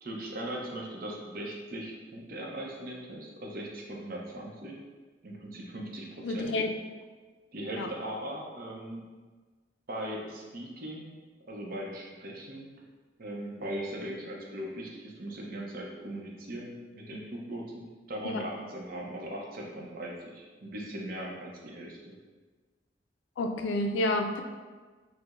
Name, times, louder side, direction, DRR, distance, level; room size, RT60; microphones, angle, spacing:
voice 1, 0.0-4.7 5.2-6.5 7.5-9.0 9.9-11.1 11.4-12.7 13.2-17.8 18.1-22.1, right 1 dB, 50° right, -2 dB, 0.5 m, -39 dB
voice 2, 6.2-6.7 7.8-7.9 18.3-18.4 23.4-24.4, left 2 dB, 85° left, 4 dB, 0.3 m, -29 dB
4.5 x 2.0 x 2.4 m, 1.4 s
head